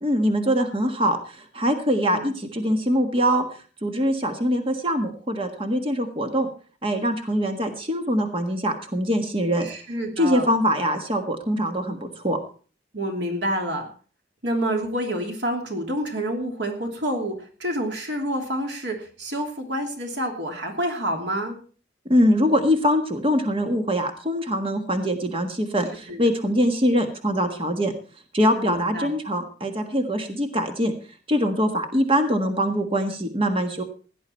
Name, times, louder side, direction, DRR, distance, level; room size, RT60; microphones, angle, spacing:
voice 1, 0.0-3.4 3.8-6.5 6.8-9.7 10.2-12.4 22.1-27.9 28.3-30.9 31.3-33.8, equal, 30° right, 5 dB, 1.6 m, -23 dB
voice 2, 9.6-10.5 12.9-13.9 14.4-21.6 26.1-26.2 28.6-29.1, right 1 dB, 75° right, 3 dB, 2.8 m, -28 dB
17.0 x 11.0 x 4.5 m, 0.39 s
head